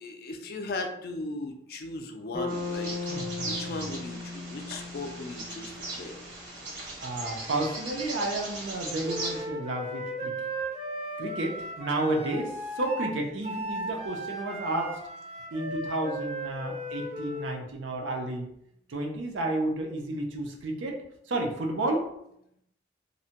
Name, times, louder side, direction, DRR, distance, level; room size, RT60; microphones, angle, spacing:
voice 1, 0.0-2.9 3.4-6.2, left 2 dB, 50° left, 4 dB, 0.3 m, -37 dB
Bass guitar, 2.3-6.4, left 3 dB, 30° left, 0.7 m, -37 dB
Bird vocalization bird call bird song, 2.5-9.4, right 2 dB, 70° right, 0.9 m, -39 dB
voice 2, 3.1-3.8 7.0-10.4 11.2-15.0 15.5-18.5 18.9-21.0 21.3-22.1, right 2 dB, 90° right, 2 dB, 0.5 m, -31 dB
Wind instrument woodwind instrument, 9.0-17.6, right 1 dB, 35° right, 0.5 m, -36 dB
2.6 x 2.1 x 2.8 m, 0.77 s
head